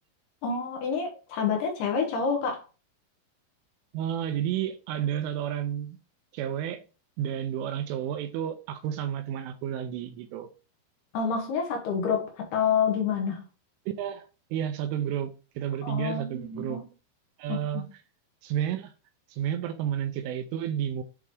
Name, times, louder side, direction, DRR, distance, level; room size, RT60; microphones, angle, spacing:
voice 1, 0.4-2.6 11.1-13.4 15.8-16.8 17.5-17.8, left 6 dB, 70° left, 2.6 m, -28 dB
voice 2, 3.9-6.0 6.3-6.8 7.2-10.5 13.9-16.8 17.4-17.9 18.4-18.9 19.3-21.0, right 10 dB, 80° right, 3.0 m, -31 dB
8.3 x 3.5 x 3.5 m
omnidirectional pair, 6.0 m